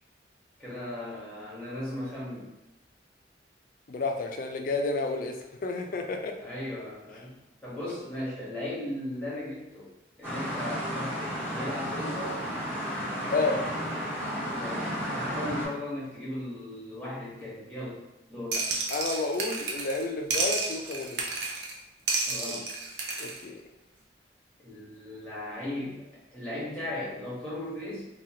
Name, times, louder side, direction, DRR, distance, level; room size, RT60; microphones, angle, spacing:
voice 1, 0.6-2.5 6.4-7.3 7.6-9.9 10.2-12.4 14.5-18.0 18.3-18.6 22.3-22.7 24.6-26.0 26.3-28.1, left 1 dB, 5° left, -9 dB, 1.1 m, -37 dB
voice 2, 3.9-5.4 5.6-6.4 13.3-13.6 18.9-21.4 23.2-23.6, left 3 dB, 50° left, 3 dB, 0.3 m, -30 dB
sound 1, 10.2-15.7, equal, 10° right, 1.2 m, -33 dB
sound 2, 18.5-20.0 20.3-21.7 22.1-23.4, right 3 dB, 70° right, 0.5 m, -31 dB
2.9 x 2.3 x 2.7 m, 0.91 s
head